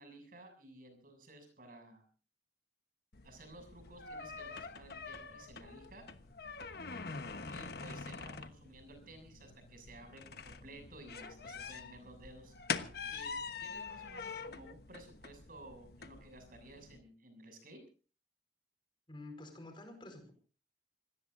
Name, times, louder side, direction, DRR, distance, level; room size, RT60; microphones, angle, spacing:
voice 1, 0.0-2.0 3.2-6.0 7.5-12.5 13.1-13.3 13.6-17.8, right 2 dB, 55° right, 6 dB, 7.0 m, -55 dB
sound 1, 3.1-17.0, left 5 dB, 60° left, 1.2 m, -45 dB
voice 2, 19.1-20.3, left 2 dB, 30° left, 5 dB, 4.8 m, -49 dB
26.5 x 18.0 x 2.7 m, 0.38 s
head